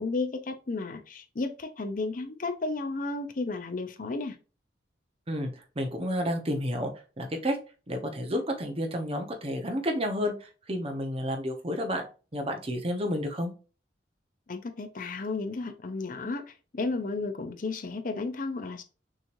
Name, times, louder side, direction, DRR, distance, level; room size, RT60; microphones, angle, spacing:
voice 1, 0.0-4.4 14.5-18.8, left 3 dB, 50° left, 0.6 m, -33 dB
voice 2, 5.8-6.9 7.2-7.6 7.9-12.0 12.3-13.5, equal, 30° right, 1.0 m, -30 dB
6.3 x 3.2 x 2.6 m
head